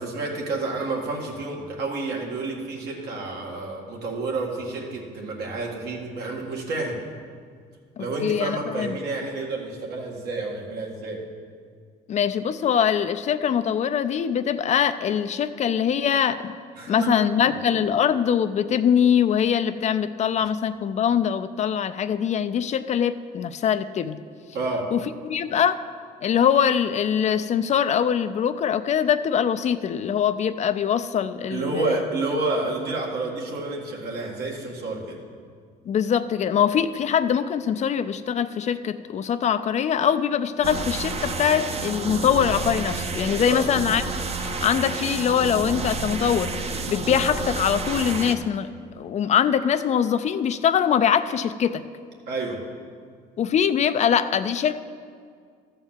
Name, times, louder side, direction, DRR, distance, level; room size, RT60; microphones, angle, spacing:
voice 1, 0.0-7.0 8.0-11.2 16.8-17.5 24.5-24.9 31.5-35.2 43.5-43.6 52.3-52.6, right 2 dB, 75° right, -1 dB, 2.0 m, -29 dB
voice 2, 8.0-9.0 12.1-16.5 16.9-24.2 24.9-25.8 26.2-32.0 35.9-44.0 44.4-46.5 46.9-51.9 53.4-54.8, left 8 dB, 45° left, 12 dB, 0.4 m, -23 dB
sound 1, 40.6-48.3, right 3 dB, 35° right, 0.8 m, -30 dB
13.5 x 4.5 x 7.3 m, 2.1 s
cardioid pair, 110°, 17 cm